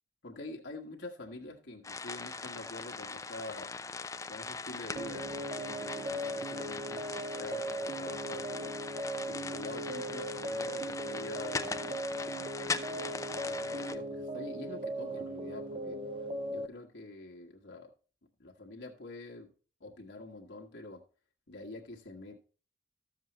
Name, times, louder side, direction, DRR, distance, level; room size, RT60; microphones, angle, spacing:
voice 1, 0.2-3.7 4.3-7.0 7.3-12.0 12.3-16.0 16.5-17.9 18.4-19.5 19.8-21.0 21.5-22.4, left 2 dB, 70° left, 1.6 m, -46 dB
sound 1, 1.8-14.0, left 4 dB, 15° left, 0.5 m, -40 dB
sound 2, 5.0-16.7, right 1 dB, 30° right, 0.7 m, -38 dB
13.5 x 7.3 x 3.1 m
head